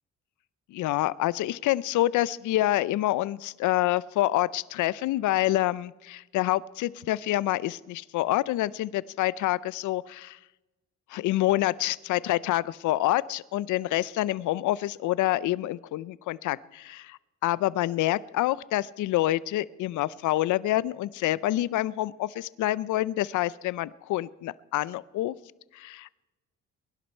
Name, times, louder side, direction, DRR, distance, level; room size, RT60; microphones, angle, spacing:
voice 1, 0.7-10.4 11.1-25.3 25.7-26.1, left 15 dB, 80° left, 20 dB, 0.5 m, -27 dB
22.0 x 11.0 x 4.4 m, 1.0 s
cardioid pair, 90°, 30 cm